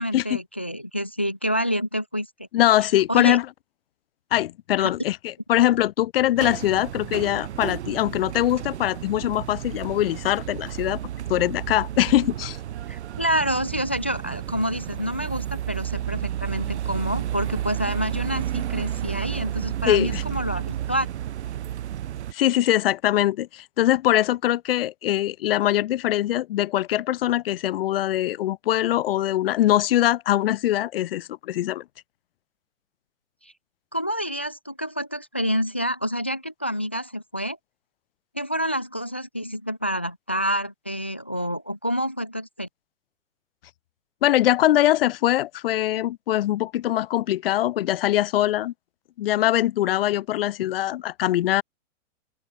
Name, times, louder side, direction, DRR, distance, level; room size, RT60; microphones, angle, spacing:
voice 1, 0.0-2.5 3.1-3.4 4.8-4.9 12.9-21.1 33.4-33.5 33.9-37.6 38.3-42.7, equal, 10° left, 0.3 m, -28 dB
voice 2, 2.5-3.5 4.3-11.0 11.3-12.6 19.9-20.2 22.3-31.8 44.2-48.7 49.2-51.6, left 13 dB, 45° left, 4.3 m, -22 dB
sound 1, 6.4-22.3, right 11 dB, 60° right, 2.2 m, -31 dB
open air
hypercardioid pair, 170°, 39 cm